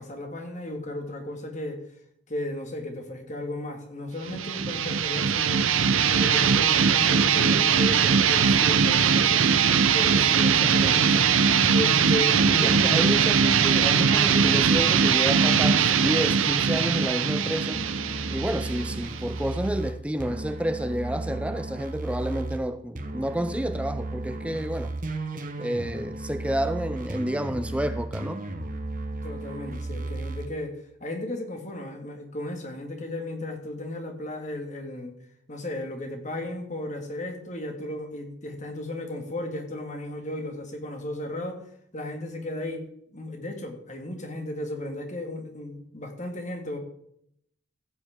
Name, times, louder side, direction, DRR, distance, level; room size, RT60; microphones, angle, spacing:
voice 1, 0.0-1.8 2.3-5.7 6.1-9.5 9.9-11.2 11.7-13.0 24.4-24.6 29.2-30.7 31.0-35.1 35.5-41.6 41.9-42.9 43.1-46.8, left 1 dB, 35° left, 1.9 m, -35 dB
sound 1, 4.2-19.6, right 6 dB, 90° right, 0.8 m, -21 dB
voice 2, 12.6-17.8 18.3-24.9 25.6-28.4, right 1 dB, 5° right, 0.4 m, -30 dB
sound 2, 17.7-22.6 23.0-30.5, right 2 dB, 40° right, 1.2 m, -34 dB
15.5 x 8.2 x 3.7 m
head